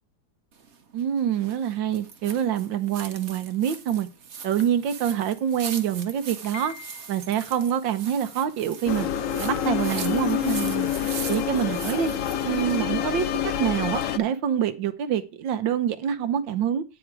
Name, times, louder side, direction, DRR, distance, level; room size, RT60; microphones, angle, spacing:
sound 1, 0.5-12.8, right 6 dB, 45° right, 1.1 m, -41 dB
voice 1, 0.9-4.1 4.4-6.7 7.1-9.1 9.4-10.9 11.3-12.1 12.4-16.8, right 9 dB, 80° right, 1.7 m, -26 dB
sound 2, 3.3-3.7 4.6-4.7 5.0-5.1 5.5-5.6 6.2-7.6, left 7 dB, 90° left, 2.1 m, -43 dB
sound 3, 8.9-14.2, left 10 dB, 65° left, 0.8 m, -27 dB
9.2 x 7.3 x 4.7 m
omnidirectional pair, 2.1 m